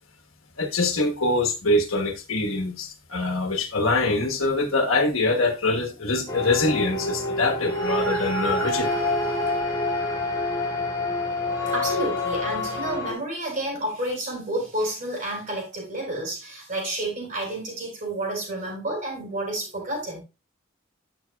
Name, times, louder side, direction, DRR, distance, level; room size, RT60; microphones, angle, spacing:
voice 1, 0.6-8.9, left 2 dB, 90° left, 1.3 m, -24 dB
sound 1, 6.3-13.1, left 2 dB, 20° left, 2.6 m, -27 dB
voice 2, 11.7-20.2, right 1 dB, 35° right, 4.5 m, -30 dB
12.0 x 5.8 x 2.3 m
head